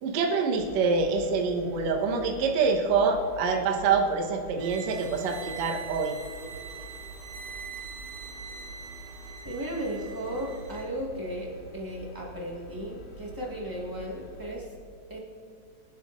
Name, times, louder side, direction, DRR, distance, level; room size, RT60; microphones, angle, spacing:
voice 1, 0.0-6.1, right 4 dB, 65° right, 1 dB, 2.1 m, -26 dB
sound 1, 0.6-14.5, right 2 dB, 60° left, 4.0 m, -46 dB
sound 2, 4.6-10.9, right 6 dB, 80° right, 2.3 m, -43 dB
voice 2, 9.4-14.7 15.1-15.2, equal, 20° right, -4 dB, 0.5 m, -35 dB
25.0 x 10.5 x 2.5 m, 2.1 s
omnidirectional pair, 3.9 m